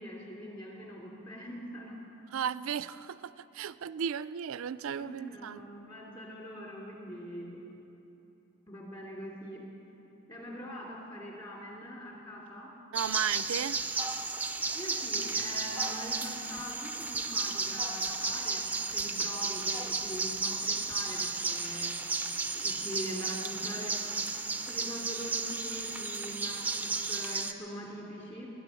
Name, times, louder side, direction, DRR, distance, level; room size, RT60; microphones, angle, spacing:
voice 1, 0.0-2.0 5.0-7.6 8.7-9.7 10.3-12.7 14.7-21.9 22.5-23.9 24.7-28.5, equal, 25° left, -3 dB, 2.8 m, -43 dB
voice 2, 2.3-5.7 12.9-13.8, right 8 dB, 70° right, 16 dB, 0.4 m, -35 dB
sound 1, 12.9-27.5, right 3 dB, 5° right, 0.4 m, -33 dB
19.5 x 10.5 x 7.1 m, 3.0 s
head